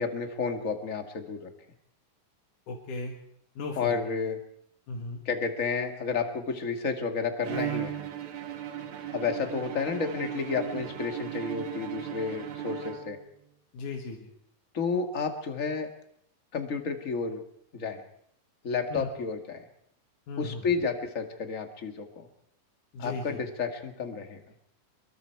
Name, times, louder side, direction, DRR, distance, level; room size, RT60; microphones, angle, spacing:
voice 1, 0.0-1.5 3.8-4.4 5.3-8.0 9.1-13.2 14.7-15.9 16.5-17.4 17.7-18.0 18.6-19.7 20.4-22.3 23.0-24.4, left 5 dB, 30° left, 5 dB, 1.7 m, -31 dB
voice 2, 2.7-3.2 3.6-4.0 4.9-5.2 13.7-14.3 18.9-19.1 20.3-20.7 22.9-23.4, left 3 dB, 70° left, 1 dB, 3.3 m, -36 dB
Bowed string instrument, 7.4-13.4, right 11 dB, 60° right, 2.5 m, -36 dB
24.5 x 22.5 x 4.7 m, 0.70 s
omnidirectional pair, 3.9 m